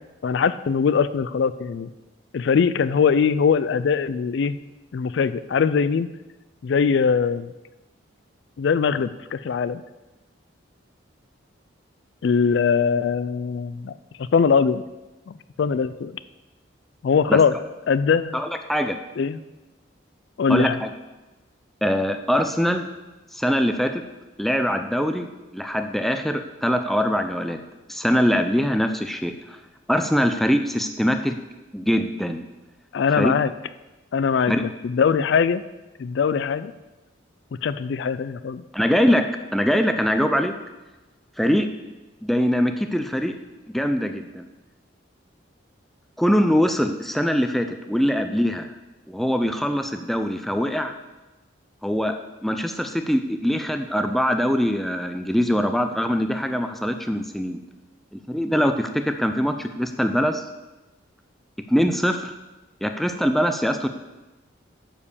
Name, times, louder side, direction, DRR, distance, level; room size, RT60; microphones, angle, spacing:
voice 1, 0.2-1.9 2.3-4.6 4.9-6.1 6.6-7.5 8.6-9.8 12.2-13.9 14.2-14.8 15.3-16.1 17.0-17.5 17.9-18.4 19.2-19.4 20.4-20.8 32.9-33.5 34.1-35.6 36.0-36.7 37.6-38.6, left 6 dB, 65° left, 15 dB, 0.3 m, -21 dB
voice 2, 18.3-19.0 20.5-20.9 21.8-22.9 23.3-24.0 24.4-27.6 27.9-29.6 29.9-31.3 31.7-32.4 33.2-33.3 34.5-34.6 38.7-40.6 41.4-41.7 42.2-43.3 43.7-44.5 46.2-48.7 49.1-50.9 51.8-52.2 52.4-57.6 58.1-60.4 61.7-62.3 62.8-63.9, equal, ahead, 6 dB, 0.4 m, -23 dB
9.6 x 5.2 x 6.9 m, 1.1 s
head